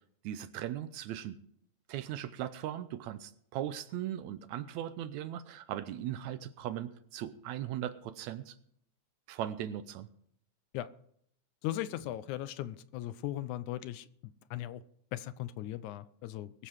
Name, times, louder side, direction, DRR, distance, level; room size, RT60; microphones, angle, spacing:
voice 1, 0.2-1.4 1.9-8.6 9.3-10.1, right 11 dB, 80° right, 2.0 m, -38 dB
voice 2, 11.6-14.8 15.1-16.7, left 13 dB, 85° left, 2.1 m, -38 dB
21.5 x 7.6 x 4.7 m
omnidirectional pair, 3.4 m